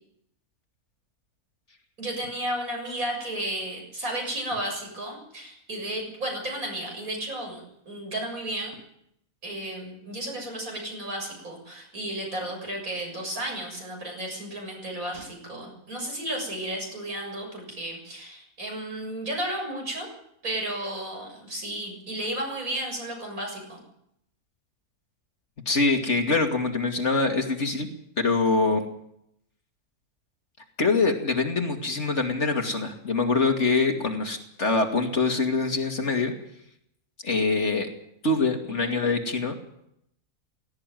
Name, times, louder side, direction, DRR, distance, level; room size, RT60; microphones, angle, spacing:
voice 1, 2.0-8.7 9.4-20.1 20.4-23.8 38.7-38.9, right 1 dB, 65° right, 0 dB, 7.7 m, -33 dB
voice 2, 25.7-27.9 28.2-28.9 30.8-36.3 37.2-37.9 38.2-39.5, left 3 dB, 50° left, 4 dB, 2.8 m, -24 dB
17.5 x 17.0 x 9.2 m, 0.76 s
omnidirectional pair, 1.6 m